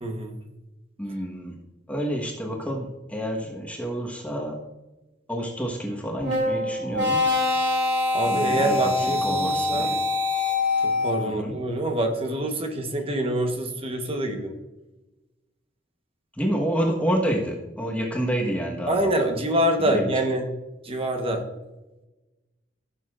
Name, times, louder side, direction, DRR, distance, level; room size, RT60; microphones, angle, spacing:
voice 1, 0.0-0.4 8.1-9.9 10.8-14.6 18.9-20.5 20.8-21.4, right 1 dB, 30° right, 4 dB, 1.1 m, -26 dB
voice 2, 1.0-1.6 1.9-4.6 5.3-7.2 8.3-10.0 11.2-11.5 16.4-19.1 19.8-20.1, equal, 10° left, -1 dB, 1.2 m, -28 dB
sound 1, 6.2-11.3, left 2 dB, 80° right, 2.7 m, -24 dB
15.5 x 6.7 x 2.5 m, 1.1 s
head